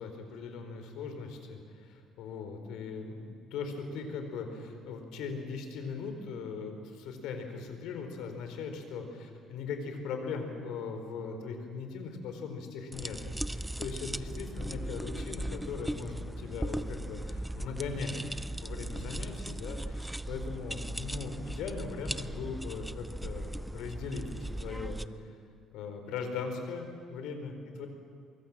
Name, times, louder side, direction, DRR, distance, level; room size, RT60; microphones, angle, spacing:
voice 1, 0.0-18.2 18.6-25.0 25.7-27.9, left 5 dB, 80° left, 6 dB, 4.4 m, -39 dB
sound 1, 12.9-25.1, right 1 dB, 5° right, 0.6 m, -38 dB
24.0 x 23.5 x 7.5 m, 2.2 s
cardioid pair, 120°, 0 cm